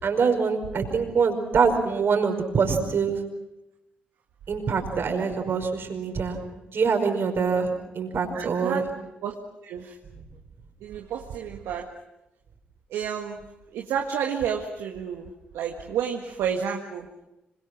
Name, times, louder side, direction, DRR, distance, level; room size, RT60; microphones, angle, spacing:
voice 1, 0.0-3.2 4.5-6.4 6.7-8.8, right 5 dB, 55° right, 5 dB, 5.2 m, -24 dB
voice 2, 8.3-8.9 9.2-10.0 10.8-11.9 12.9-13.4 13.7-17.1, right 8 dB, 75° right, 2 dB, 1.7 m, -31 dB
26.0 x 25.0 x 6.2 m, 0.95 s
hypercardioid pair, 45°, 4 cm